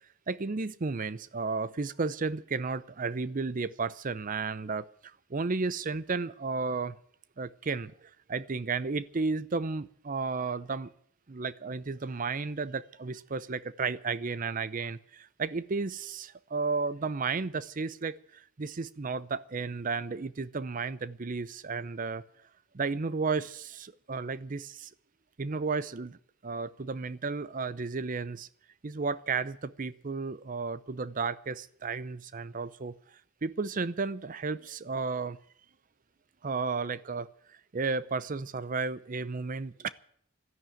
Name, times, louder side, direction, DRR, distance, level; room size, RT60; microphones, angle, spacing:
voice 1, 0.3-7.0 7.4-10.9 11.3-22.2 22.7-24.9 25.4-28.5 28.8-32.9 33.4-35.4 36.4-39.9, right 4 dB, 40° right, 0.6 m, -33 dB
13.0 x 11.0 x 9.0 m
head